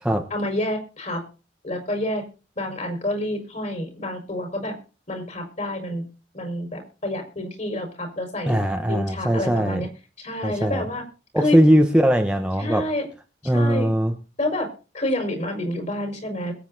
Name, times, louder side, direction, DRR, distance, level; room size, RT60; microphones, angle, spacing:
voice 1, 0.3-1.2 1.6-2.2 2.6-4.7 5.1-6.0 6.3-8.6 8.9-9.9 10.2-11.0 11.4-11.6 12.6-13.1 13.5-13.9 14.4-14.7 14.9-16.5, left 1 dB, 40° left, 4 dB, 5.0 m, -28 dB
voice 2, 8.5-9.9 10.4-10.8 11.3-12.9 13.5-14.2, equal, 5° right, 3 dB, 1.1 m, -20 dB
22.0 x 8.3 x 4.1 m, 0.34 s
head